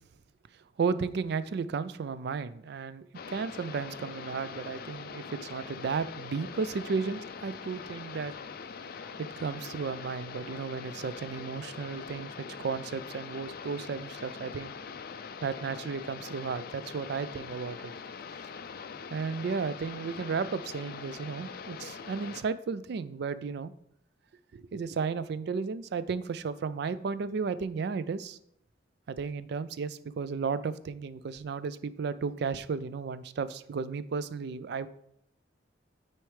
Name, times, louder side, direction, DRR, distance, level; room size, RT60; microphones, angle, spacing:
voice 1, 0.8-8.3 9.4-14.7 15.4-17.9 19.1-23.7 24.5-28.4 29.1-34.9, right 5 dB, 60° right, 15 dB, 0.4 m, -34 dB
sound 1, 3.1-22.4, left 5 dB, 55° left, 0.4 m, -43 dB
9.2 x 4.5 x 3.2 m, 0.75 s
head